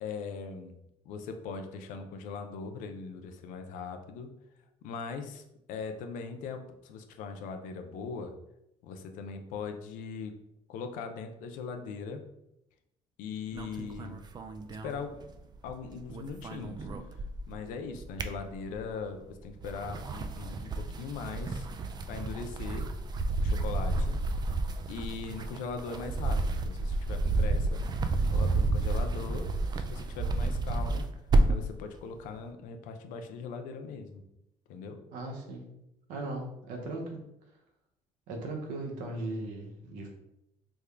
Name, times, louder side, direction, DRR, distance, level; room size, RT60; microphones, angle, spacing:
voice 1, 0.0-0.8 1.0-4.3 4.8-8.4 8.8-10.4 10.7-12.2 13.2-14.2 14.7-15.2 15.6-16.9 17.2-21.7 22.1-22.9 23.4-24.2 24.9-29.5 29.8-31.1 31.5-34.2 34.7-35.0, left 5 dB, 80° left, 6 dB, 0.5 m, -40 dB
sound 1, 13.5-15.7 16.0-17.6 17.9-19.0 19.5-31.7, right 2 dB, 30° right, 0.3 m, -30 dB
voice 2, 35.1-35.7 36.1-37.2 38.3-40.1, right 2 dB, 85° right, 1 dB, 0.9 m, -38 dB
3.5 x 2.2 x 3.3 m, 0.82 s
supercardioid pair, 90°, 13 cm